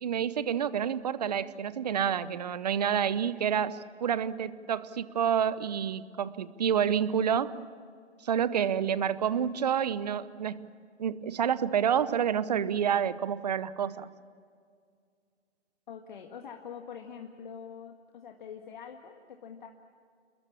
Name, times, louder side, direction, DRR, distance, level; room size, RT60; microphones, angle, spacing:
voice 1, 0.0-7.5 8.2-10.6 11.0-14.1, right 8 dB, 35° right, 16 dB, 0.9 m, -28 dB
voice 2, 15.9-19.7, left 7 dB, 40° left, 3 dB, 1.9 m, -44 dB
29.5 x 21.5 x 7.2 m, 2.2 s
figure-of-eight pair, 150°, 36 cm